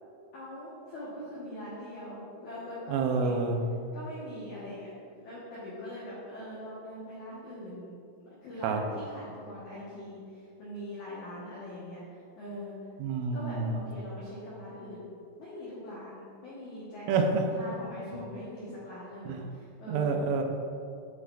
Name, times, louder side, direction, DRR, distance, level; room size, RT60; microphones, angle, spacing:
voice 1, 0.3-3.4 3.9-12.7 13.3-15.1 15.4-17.3 17.5-20.1, left 1 dB, 85° left, -8 dB, 1.7 m, -42 dB
voice 2, 2.9-3.6 8.6-8.8 13.0-13.8 17.1-17.4 19.3-19.4 19.9-20.4, right 4 dB, 90° right, 3 dB, 3.1 m, -28 dB
10.5 x 5.8 x 2.5 m, 2.4 s
omnidirectional pair, 5.5 m